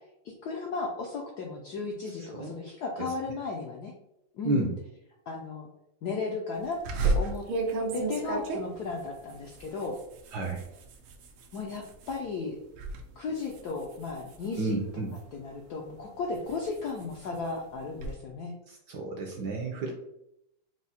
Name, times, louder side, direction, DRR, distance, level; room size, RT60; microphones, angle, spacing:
voice 1, 0.4-3.9 4.3-4.7 5.3-5.7 6.0-7.4 7.9-10.0 11.5-12.5 13.2-14.8 15.3-18.5, left 4 dB, 80° left, 0 dB, 0.9 m, -35 dB
voice 2, 2.2-2.5 3.0-3.1 4.4-4.7 10.3-10.7 14.6-15.1 18.7-19.9, right 2 dB, 70° right, 1 dB, 1.0 m, -31 dB
sound 1, 6.8-12.2 12.6-13.0 13.4-15.4 15.9-18.1, right 3 dB, 90° right, 1.6 m, -33 dB
4.8 x 2.0 x 4.1 m, 0.82 s
omnidirectional pair, 2.4 m